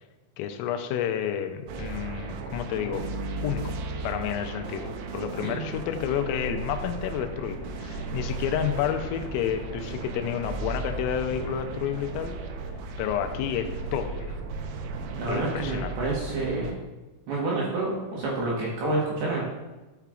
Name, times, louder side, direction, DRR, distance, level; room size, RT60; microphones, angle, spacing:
voice 1, 0.4-3.1 3.4-3.8 4.0-12.4 13.0-14.4 15.3-15.9, left 9 dB, 85° left, 7 dB, 3.2 m, -30 dB
sound 1, 1.7-16.7, right 3 dB, 90° right, 3.5 m, -35 dB
voice 2, 5.4-5.8 15.1-16.7 17.3-19.4, right 2 dB, 70° right, -5 dB, 2.7 m, -28 dB
12.0 x 5.7 x 2.4 m, 1.1 s
omnidirectional pair, 5.9 m